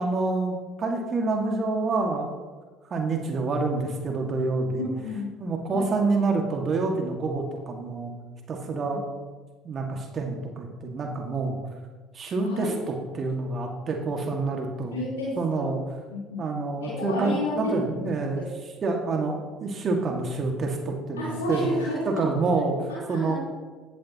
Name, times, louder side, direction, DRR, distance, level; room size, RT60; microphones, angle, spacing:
voice 1, 0.0-2.3 2.9-4.9 5.4-8.1 8.5-9.0 9.6-11.6 12.1-15.0 15.4-15.8 16.4-18.4 18.8-21.7 22.1-23.3, right 3 dB, 40° right, 2 dB, 2.0 m, -27 dB
voice 2, 4.8-5.3 5.7-5.9 12.4-12.7 14.9-15.7 16.1-16.4 16.8-17.7 21.2-22.2 22.9-23.4, left 2 dB, 80° left, -8 dB, 3.8 m, -30 dB
17.5 x 11.5 x 3.0 m, 1.4 s
figure-of-eight pair, 60°, 0 cm